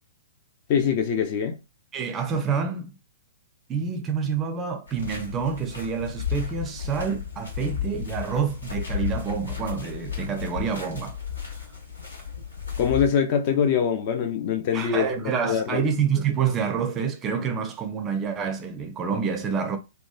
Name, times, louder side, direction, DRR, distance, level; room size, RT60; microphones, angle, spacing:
voice 1, 0.7-1.6 12.8-15.1 15.4-15.8, left 7 dB, 40° left, 0.4 m, -23 dB
voice 2, 1.9-2.9 3.7-11.2 14.7-19.8, right 6 dB, 20° right, 0.4 m, -27 dB
sound 1, 4.9-13.1, left 8 dB, 80° left, 0.9 m, -33 dB
2.9 x 2.2 x 2.3 m
figure-of-eight pair, 110°, 0 cm